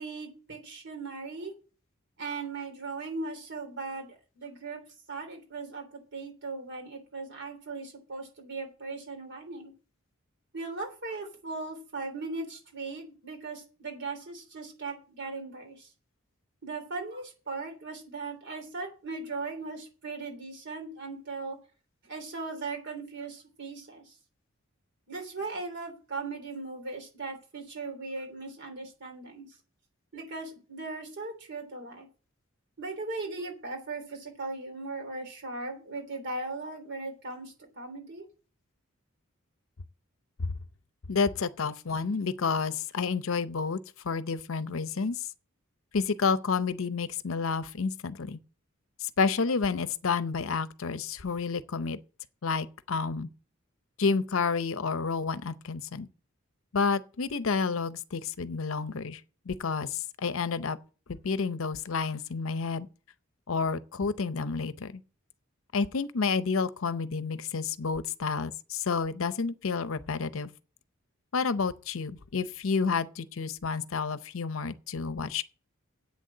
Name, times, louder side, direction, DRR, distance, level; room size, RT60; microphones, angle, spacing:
voice 1, 0.0-1.5 2.2-4.8 5.1-9.7 10.5-15.9 16.6-21.6 22.0-24.1 25.1-29.5 30.1-32.1 32.8-38.3, right 3 dB, 55° right, 3.3 m, -38 dB
voice 2, 41.1-43.8 44.0-45.3 45.9-48.4 49.0-52.0 52.4-53.3 54.0-56.1 56.7-59.2 59.5-60.8 61.1-62.9 63.5-65.0 65.7-70.5 71.3-75.4, left 5 dB, 70° left, 0.7 m, -30 dB
8.4 x 6.6 x 7.6 m
head